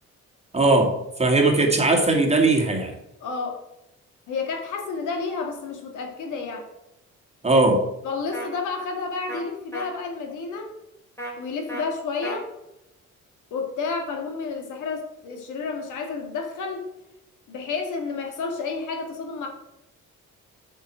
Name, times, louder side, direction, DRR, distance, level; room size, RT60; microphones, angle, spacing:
voice 1, 0.5-2.9 7.4-7.8, right 2 dB, 20° right, 1 dB, 2.2 m, -19 dB
voice 2, 3.2-3.6 4.3-6.7 8.0-10.7 11.4-12.5 13.5-16.9 17.5-19.5, left 4 dB, 85° left, 3 dB, 2.0 m, -30 dB
sound 1, 8.3-8.5 9.3-9.4 9.7-9.9 11.2-11.3 11.7-11.8 12.2-12.4, right 1 dB, 10° left, 3.6 m, -33 dB
6.7 x 6.0 x 6.2 m, 0.88 s
cardioid pair, 90°, 30 cm